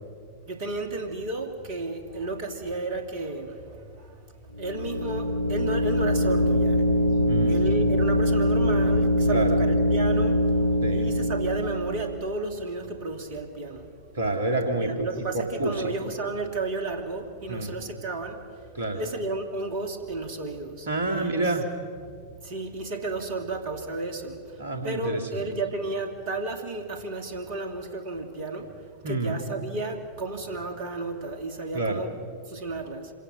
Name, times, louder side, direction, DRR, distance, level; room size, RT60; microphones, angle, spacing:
voice 1, 0.5-13.9 14.8-18.7 18.9-21.4 22.4-32.1 32.5-33.1, right 2 dB, 45° right, 6 dB, 2.4 m, -33 dB
sound 1, 4.5-12.3, equal, 90° right, 2.1 m, -23 dB
voice 2, 7.3-7.6 9.3-9.6 10.8-11.1 14.1-15.9 17.5-17.8 18.7-19.0 20.9-21.7 24.6-25.5 29.0-29.4 31.7-32.1, right 2 dB, 65° right, 5 dB, 2.6 m, -28 dB
26.5 x 17.5 x 6.4 m, 2.2 s
figure-of-eight pair, 90°, 0 cm